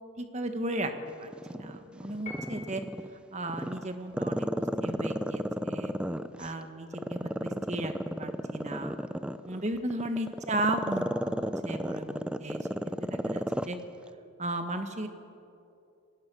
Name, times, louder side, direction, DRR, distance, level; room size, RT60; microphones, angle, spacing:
voice 1, 0.2-0.9 1.2-2.8 3.3-5.9 6.4-7.9 8.2-8.9 9.4-12.6 13.0-13.8 14.4-15.1, right 1 dB, 35° right, 7 dB, 1.6 m, -35 dB
Growling, 1.3-3.1 3.5-6.5 6.9-13.8 14.1-14.2, equal, 5° right, 0.5 m, -32 dB
Piano, 2.3-3.2, left 3 dB, 35° left, 3.2 m, -45 dB
27.0 x 18.0 x 6.4 m, 2.6 s
head